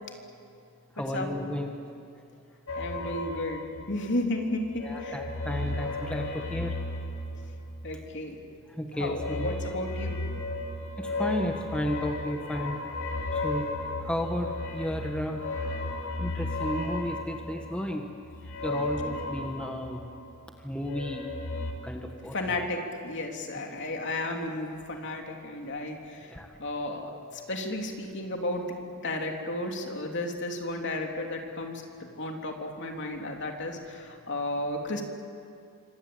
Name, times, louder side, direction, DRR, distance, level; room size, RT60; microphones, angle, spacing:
voice 1, 1.0-1.8 4.8-6.7 8.8-9.5 11.0-12.8 13.3-13.7 14.0-15.4 16.2-18.1 18.6-20.0 20.6-21.3 21.8-22.5 26.3-26.5, left 1 dB, 5° left, 2 dB, 1.6 m, -33 dB
sound 1, 2.7-4.3 4.6-8.2 9.0-20.4 20.7-21.7, left 2 dB, 75° left, 3.6 m, -34 dB
voice 2, 2.8-5.2 7.8-8.4 8.9-10.2 22.3-31.8 32.2-35.0, left 1 dB, 55° left, 2 dB, 3.4 m, -33 dB
26.5 x 26.0 x 8.8 m, 2.4 s
head